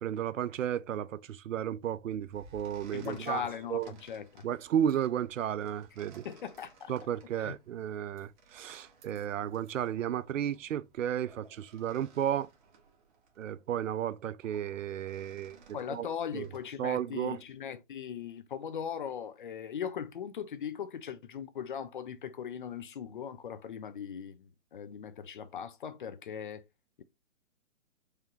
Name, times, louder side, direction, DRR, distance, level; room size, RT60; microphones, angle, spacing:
voice 1, 0.0-3.4 3.7-3.9 4.4-6.3 6.9-12.5 13.4-15.6 15.9-16.1 16.3-16.5 16.8-17.4, right 10 dB, 75° right, 0.5 m, -33 dB
sound 1, 1.9-16.7, right 4 dB, 35° right, 1.3 m, -60 dB
voice 2, 2.9-4.4 6.2-6.9 7.4-7.6 15.7-26.6 27.0-27.1, left 8 dB, 40° left, 0.4 m, -39 dB
4.8 x 3.5 x 2.9 m
hypercardioid pair, 140°, 39 cm